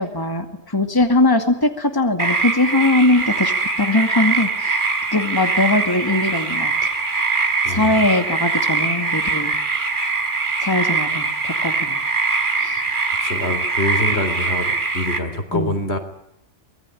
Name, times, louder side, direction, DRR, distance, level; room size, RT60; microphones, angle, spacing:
voice 1, 0.0-6.9 7.7-9.5 10.6-12.0 12.6-12.8 15.5-15.8, left 2 dB, 15° left, 6 dB, 2.3 m, -20 dB
sound 1, 2.2-15.2, right 4 dB, 40° right, 3.3 m, -22 dB
voice 2, 7.6-8.0 13.2-16.0, left 1 dB, 55° left, 9 dB, 3.9 m, -25 dB
25.0 x 21.5 x 10.0 m, 0.81 s
omnidirectional pair, 1.3 m